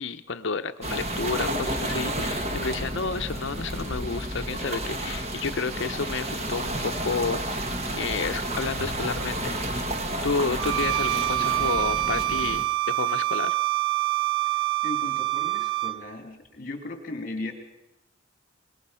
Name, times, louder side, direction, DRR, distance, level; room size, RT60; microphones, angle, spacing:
voice 1, 0.0-9.6 10.2-13.6, left 4 dB, 60° left, 9 dB, 0.7 m, -31 dB
sound 1, 0.8-12.7, right 1 dB, 30° right, 1.5 m, -31 dB
Bowed string instrument, 10.6-16.0, right 16 dB, 60° right, 1.1 m, -26 dB
voice 2, 14.8-17.5, left 2 dB, 40° left, 5 dB, 2.8 m, -36 dB
24.0 x 21.5 x 5.7 m, 0.89 s
head